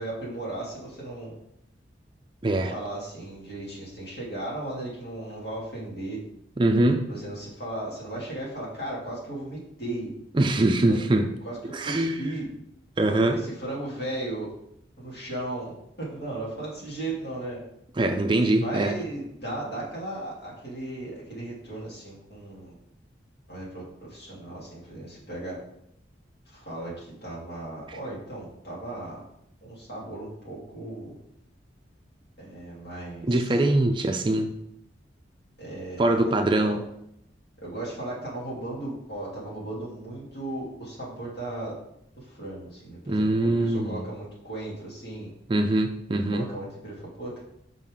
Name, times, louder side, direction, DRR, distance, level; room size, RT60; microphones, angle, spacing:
voice 1, 0.0-1.3 2.5-6.2 7.1-10.1 10.9-11.0 11.4-12.5 13.3-14.5 15.0-17.6 18.5-22.7 23.5-25.6 26.5-29.2 29.6-31.1 32.4-33.4 35.6-36.8 37.6-41.8 42.1-45.3 46.3-47.4, right 1 dB, 60° left, -6 dB, 2.6 m, -36 dB
voice 2, 2.4-2.7 6.6-7.1 10.3-11.3 11.7-12.2 13.0-13.4 18.0-19.0 33.3-34.5 36.0-36.8 43.1-44.0 45.5-46.5, right 2 dB, 25° right, 5 dB, 0.4 m, -23 dB
5.8 x 5.4 x 3.7 m, 0.77 s
head